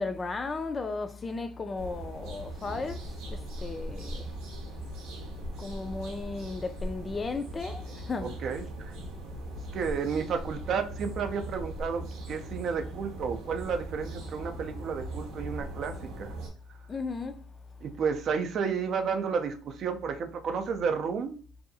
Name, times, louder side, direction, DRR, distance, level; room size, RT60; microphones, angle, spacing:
voice 1, 0.0-4.3 5.6-8.4 16.9-17.4, left 3 dB, 25° left, 0.3 m, -35 dB
sound 1, 1.8-16.5, right 1 dB, 85° right, 0.7 m, -39 dB
voice 2, 8.2-9.0 9.7-16.3 17.8-21.4, right 6 dB, 55° right, 0.4 m, -32 dB
2.6 x 2.3 x 2.6 m
cardioid pair, 110°, 0 cm